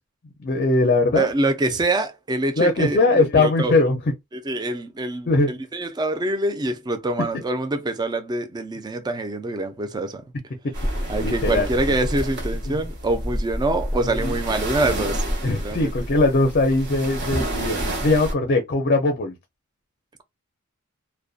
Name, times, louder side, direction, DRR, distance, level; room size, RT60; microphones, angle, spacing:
voice 1, 0.4-1.3 2.6-4.0 5.3-5.6 7.3-7.4 11.0-11.7 12.7-12.8 14.0-14.3 15.4-19.3, left 2 dB, 45° left, 0.5 m, -20 dB
voice 2, 1.1-3.7 4.3-10.2 11.1-15.9, right 2 dB, 20° right, 0.4 m, -25 dB
sound 1, 10.7-18.3, right 1 dB, 50° right, 0.8 m, -28 dB
2.5 x 2.1 x 2.3 m
head